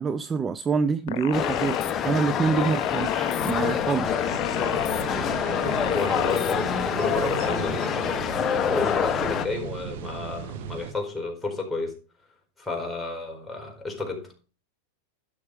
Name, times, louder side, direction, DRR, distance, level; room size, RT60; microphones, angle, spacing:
voice 1, 0.0-4.2, right 5 dB, 20° right, 0.6 m, -26 dB
sound 1, 1.1-1.9 2.6-3.5 4.1-5.0 5.6-6.5 7.2-7.6, left 13 dB, 65° left, 1.4 m, -34 dB
sound 2, 1.3-9.5, left 8 dB, 30° left, 1.1 m, -26 dB
sound 3, 3.3-10.9, right 8 dB, 65° right, 1.2 m, -37 dB
voice 2, 5.9-8.2 8.7-12.0 12.6-14.3, left 3 dB, 5° left, 4.6 m, -31 dB
12.0 x 6.9 x 5.0 m
hypercardioid pair, 125°, 0 cm